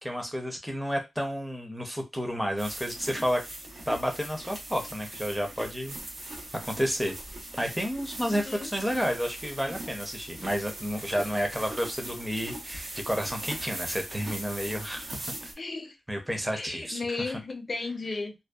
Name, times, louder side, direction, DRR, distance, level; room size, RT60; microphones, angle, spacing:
voice 1, 0.0-3.4 3.9-6.0 6.6-7.2 7.6-15.2 16.1-17.4, equal, 5° right, 0.5 m, -31 dB
sound 1, 2.6-15.5, right 1 dB, 75° right, 0.8 m, -40 dB
voice 2, 8.2-8.7 15.6-16.0 16.5-18.3, left 3 dB, 45° left, 0.4 m, -35 dB
2.6 x 2.1 x 2.3 m
wide cardioid pair, 100°, 0 cm